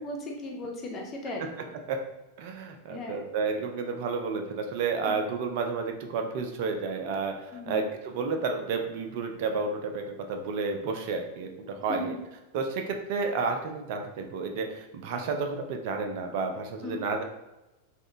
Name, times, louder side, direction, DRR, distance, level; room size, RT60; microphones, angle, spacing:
voice 1, 0.0-1.7 2.9-3.2 5.1-5.2 7.5-7.9 11.9-12.0 16.8-17.0, left 2 dB, 25° left, 0 dB, 0.6 m, -37 dB
voice 2, 1.4-2.0 2.4-12.2 12.5-17.2, right 4 dB, 50° right, 4 dB, 0.4 m, -31 dB
3.4 x 2.3 x 2.6 m, 1.0 s
figure-of-eight pair, 90°, 0 cm